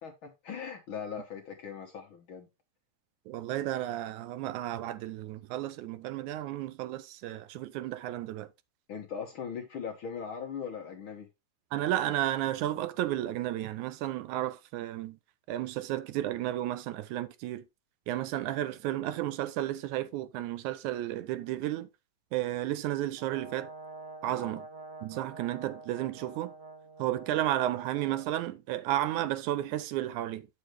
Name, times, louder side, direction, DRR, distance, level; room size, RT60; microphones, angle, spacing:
voice 1, 0.0-2.5 8.9-11.3 24.2-24.6, left 7 dB, 60° left, 1.4 m, -40 dB
voice 2, 3.3-8.5 11.7-15.2 15.5-17.6 18.1-21.9 22.3-23.7 24.2-24.6 25.0-26.5 27.0-30.5, right 13 dB, 80° right, 2.2 m, -32 dB
Brass instrument, 23.2-28.3, right 3 dB, 40° right, 2.4 m, -47 dB
9.0 x 6.5 x 3.1 m
omnidirectional pair, 3.4 m